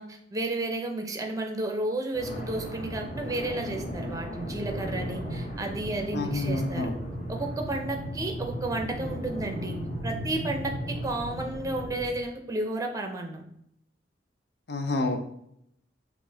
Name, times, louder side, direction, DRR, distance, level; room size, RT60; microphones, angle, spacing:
voice 1, 0.0-6.9 7.3-9.8 10.0-13.4, right 2 dB, 20° right, 3 dB, 0.6 m, -32 dB
sound 1, 2.1-12.1, equal, 40° left, 1.1 m, -35 dB
voice 2, 6.1-6.9 14.7-15.2, left 2 dB, 65° left, 6 dB, 0.5 m, -28 dB
6.0 x 2.6 x 3.3 m, 0.74 s
head